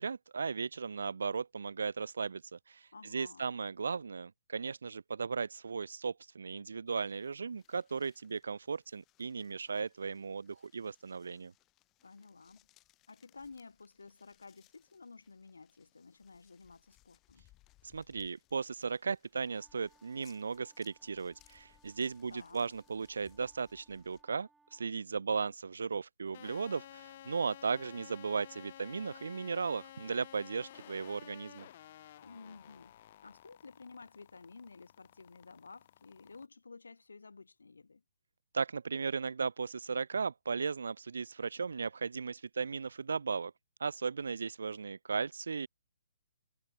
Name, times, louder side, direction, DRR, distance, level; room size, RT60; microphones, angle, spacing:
voice 1, 0.0-11.5 17.9-31.7 38.5-43.5 43.8-45.7, right 5 dB, 70° right, 0.7 m, -36 dB
voice 2, 2.9-3.5 12.0-12.7 13.1-17.5 22.3-22.7 32.2-32.9 33.2-38.0, left 4 dB, 75° left, 2.8 m, -53 dB
sound 1, 6.9-24.2, left 17 dB, 20° left, 4.4 m, -69 dB
sound 2, 19.4-24.9, right 3 dB, 5° right, 5.5 m, -69 dB
sound 3, 26.3-36.5, left 12 dB, 45° left, 1.0 m, -54 dB
figure-of-eight pair, 130°, 0 cm